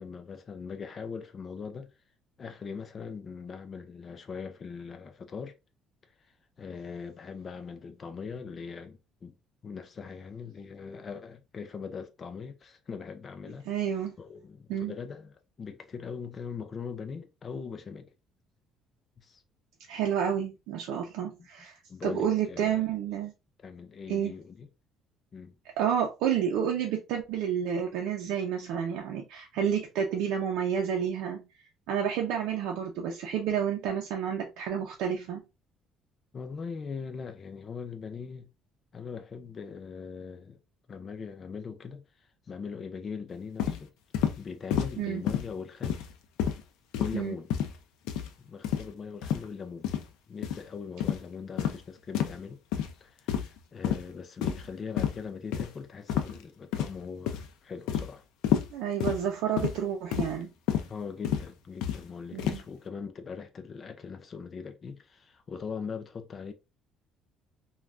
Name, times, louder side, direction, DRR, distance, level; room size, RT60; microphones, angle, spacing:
voice 1, 0.0-1.9 2.4-5.5 6.6-9.3 9.6-13.7 14.2-18.1 19.2-19.4 21.9-22.9 23.6-24.7 25.3-25.6 36.3-38.5 38.9-40.6 40.9-42.0 42.5-43.9 44.3-46.0 47.0-47.5 48.4-49.9 50.3-52.6 53.0-58.2 60.9-66.5, left 5 dB, 25° left, 0.4 m, -40 dB
voice 2, 13.7-14.1 14.7-14.9 19.9-23.3 24.1-24.3 25.8-31.4 31.9-35.4 45.0-45.2 47.1-47.4 58.7-60.5 62.3-62.6, right 8 dB, 80° right, 0.5 m, -30 dB
sound 1, 43.6-43.8 44.1-44.4 44.7-44.9 45.3-45.5 45.8-46.1 46.4-46.6 46.9-47.2 47.5-47.8 48.1-48.3 48.6-48.9 49.2-49.4 49.8-50.0 50.4-50.6 51.0-51.2 51.6-51.8 52.1-52.4 52.7-52.9 53.3-53.6 53.8-54.0 54.4-54.7 55.0-55.2 55.5-55.7 56.1-56.4 56.7-57.0 57.3-57.5 57.9-58.1 58.4-58.7 59.0-59.2 59.6-59.8 60.1-60.3 60.7-60.9 61.2-61.5 61.8-62.0 62.4-62.6, left 9 dB, 85° left, 0.5 m, -29 dB
3.3 x 2.3 x 2.4 m
cardioid pair, 175°, 0 cm